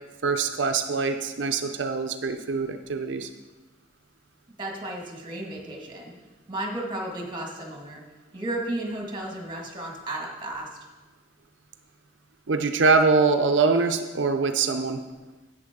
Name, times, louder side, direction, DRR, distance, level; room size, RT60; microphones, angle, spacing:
voice 1, 0.2-3.3 12.5-15.0, right 4 dB, 80° right, 7 dB, 0.6 m, -23 dB
voice 2, 4.6-6.1 6.5-8.0 8.3-10.8, right 1 dB, 25° right, 0 dB, 1.8 m, -33 dB
10.5 x 8.5 x 3.6 m, 1.2 s
head